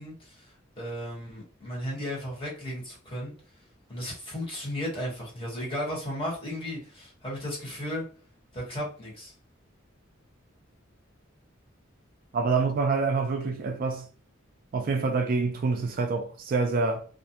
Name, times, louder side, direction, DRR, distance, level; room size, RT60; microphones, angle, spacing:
voice 1, 0.0-3.3 3.9-8.0 8.5-9.3, equal, 25° left, 1.1 m, -35 dB
voice 2, 12.3-14.1 14.7-17.0, right 4 dB, 45° right, 0.3 m, -26 dB
2.4 x 2.2 x 2.7 m
head